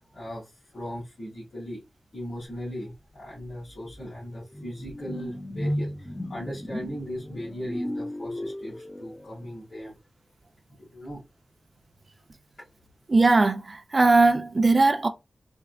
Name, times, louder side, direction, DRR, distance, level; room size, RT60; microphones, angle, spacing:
voice 1, 0.0-1.8 2.1-10.0 10.7-11.2 12.6-12.7, equal, 75° left, 2.3 m, -38 dB
sound 1, 2.9-3.0 3.4-9.5, equal, 15° left, 0.6 m, -35 dB
voice 2, 13.1-15.1, right 3 dB, 55° right, 0.5 m, -19 dB
4.5 x 2.3 x 2.3 m
cardioid pair, 40°, 0 cm